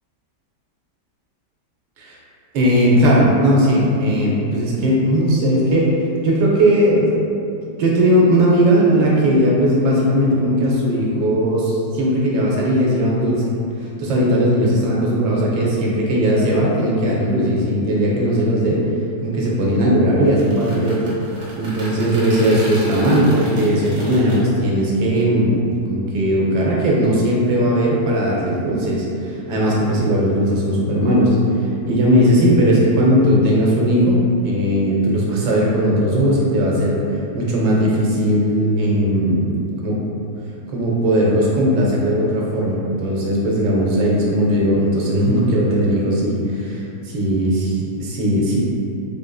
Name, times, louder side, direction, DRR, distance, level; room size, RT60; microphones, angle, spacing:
voice 1, 2.5-5.9 6.2-7.2 7.8-13.5 14.0-18.9 19.2-21.0 21.6-31.4 31.9-39.5 39.8-40.0 40.7-48.6, equal, 80° right, -4 dB, 1.3 m, -18 dB
sound 1, 20.2-24.4, right 1 dB, 55° right, 1.1 m, -35 dB
3.6 x 2.5 x 2.3 m, 2.6 s
omnidirectional pair, 1.8 m